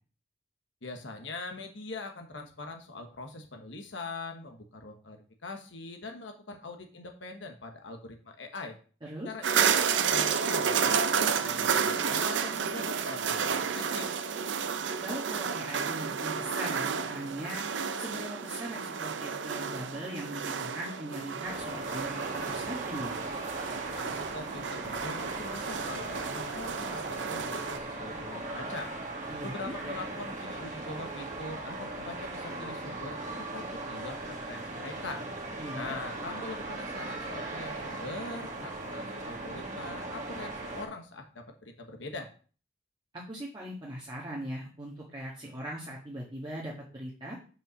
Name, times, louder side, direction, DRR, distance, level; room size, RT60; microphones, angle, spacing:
voice 1, 0.8-5.2 5.4-8.8 9.2-14.1 24.0-28.9 29.4-33.2 33.5-33.6 33.9-35.2 35.7-42.3, left 2 dB, 75° left, 4 dB, 1.2 m, -42 dB
voice 2, 9.0-9.3 15.0-17.6 18.0-23.1 29.3-30.0 35.6-35.9 43.1-47.4, right 1 dB, 25° right, -6 dB, 1.6 m, -40 dB
sound 1, 9.4-27.8, right 6 dB, 75° right, 0.6 m, -31 dB
sound 2, 21.4-40.8, right 2 dB, 40° right, 1.9 m, -38 dB
5.5 x 5.3 x 6.3 m, 0.39 s
head